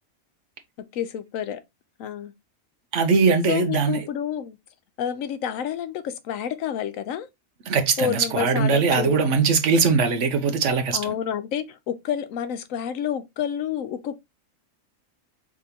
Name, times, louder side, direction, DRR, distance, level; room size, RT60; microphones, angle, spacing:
voice 1, 0.9-1.6 2.0-2.3 3.5-4.6 5.0-7.3 8.0-9.2 10.9-14.2, left 9 dB, 85° left, 1.0 m, -29 dB
voice 2, 2.9-4.0 7.7-11.1, right 5 dB, 70° right, 1.1 m, -21 dB
4.8 x 3.5 x 2.8 m
omnidirectional pair, 1.3 m